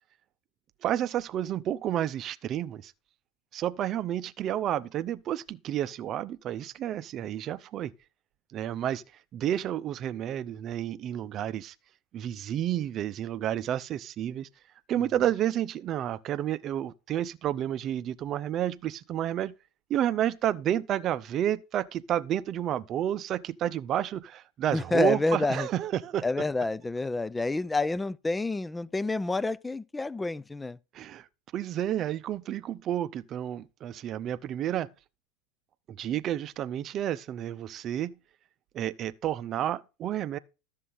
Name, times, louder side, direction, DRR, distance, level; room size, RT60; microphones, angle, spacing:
voice 1, 0.8-2.9 3.5-7.9 8.5-9.0 9.3-11.7 12.1-14.5 14.9-19.5 19.9-26.2 30.9-31.3 31.5-34.9 35.9-38.2 38.7-40.4, right 11 dB, 40° right, 0.6 m, -30 dB
voice 2, 24.7-25.7 26.2-30.8, left 2 dB, 10° left, 0.4 m, -28 dB
12.5 x 7.4 x 4.1 m
figure-of-eight pair, 85°, 0 cm